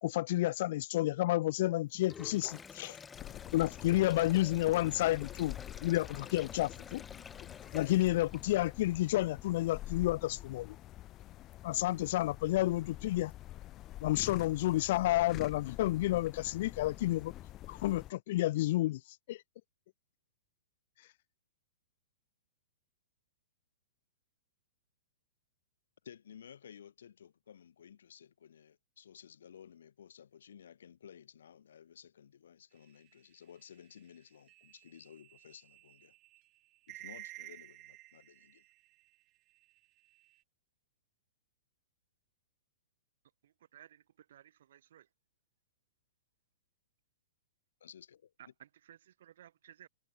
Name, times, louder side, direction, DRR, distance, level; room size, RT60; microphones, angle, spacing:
voice 1, 0.0-3.0 3.5-5.6 5.8-7.0 7.7-10.7 11.6-13.3 14.0-17.3 17.7-19.0 19.3-19.4, left 16 dB, 50° left, 0.9 m, -30 dB
Sink (filling or washing), 1.9-8.8, left 6 dB, 15° left, 2.2 m, -51 dB
sound 1, 3.1-18.1, left 14 dB, 30° left, 5.5 m, -47 dB
voice 2, 26.0-36.1 36.9-38.6 47.8-48.5, left 8 dB, 65° left, 7.6 m, -55 dB
sound 2, 32.8-39.2 39.5-40.4, right 18 dB, 35° right, 2.9 m, -54 dB
voice 3, 43.4-44.0 44.3-44.4 44.9-45.0 48.4-49.9, right 11 dB, 60° right, 4.8 m, -57 dB
figure-of-eight pair, 110°, 0 cm